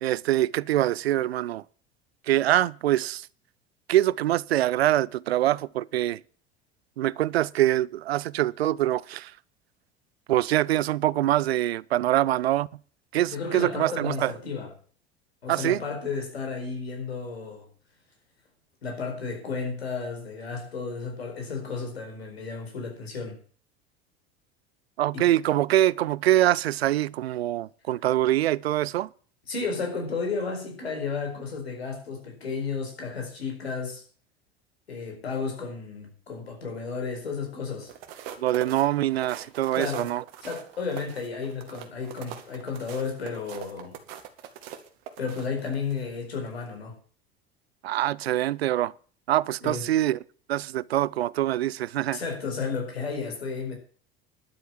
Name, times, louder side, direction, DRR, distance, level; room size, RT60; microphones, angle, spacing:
voice 1, 0.0-1.6 2.3-3.3 3.9-6.2 7.0-9.3 10.3-12.7 13.1-14.3 15.5-15.8 25.0-29.1 38.4-40.2 47.8-48.9 49.3-50.2 50.5-52.2, right 14 dB, 85° right, 0.5 m, -24 dB
voice 2, 13.3-14.7 15.4-17.7 18.8-23.4 25.1-25.2 29.5-34.0 34.9-37.9 39.7-40.1 40.4-44.0 45.2-47.0 49.6-49.9 52.1-53.8, left 5 dB, 90° left, 4.6 m, -33 dB
sound 1, 37.8-46.0 46.5-46.7, right 10 dB, 65° right, 2.3 m, -42 dB
11.5 x 8.0 x 7.5 m
hypercardioid pair, 75°, 30 cm